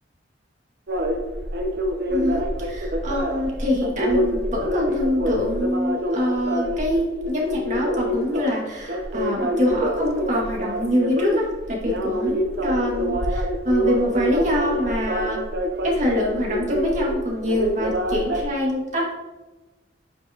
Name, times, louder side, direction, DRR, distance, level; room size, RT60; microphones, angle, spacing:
sound 1, 0.9-18.4, equal, 60° right, 0.9 m, -26 dB
voice 1, 2.1-15.4 15.8-19.1, left 1 dB, 45° right, -2 dB, 2.0 m, -25 dB
9.2 x 5.3 x 2.9 m, 1.1 s
head